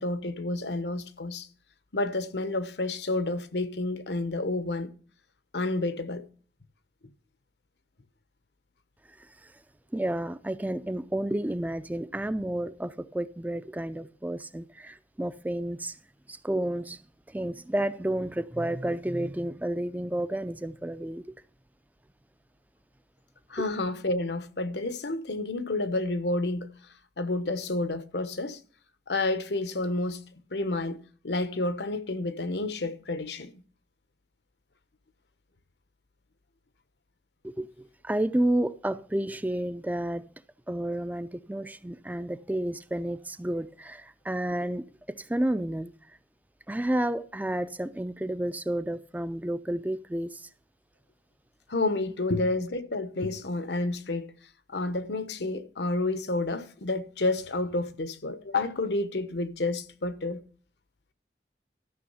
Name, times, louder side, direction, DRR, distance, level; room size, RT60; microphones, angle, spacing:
voice 1, 0.0-1.5 1.9-4.9 5.5-6.3 23.5-26.7 27.2-28.6 29.1-30.2 30.5-33.5 51.7-54.3 54.7-60.4, left 2 dB, 80° left, 1.0 m, -30 dB
voice 2, 9.2-9.5 9.9-16.0 16.3-17.0 17.3-21.3 23.6-23.7 37.4-40.3 40.7-45.9 46.7-50.5, right 1 dB, 10° right, 0.4 m, -31 dB
13.0 x 6.3 x 5.6 m
head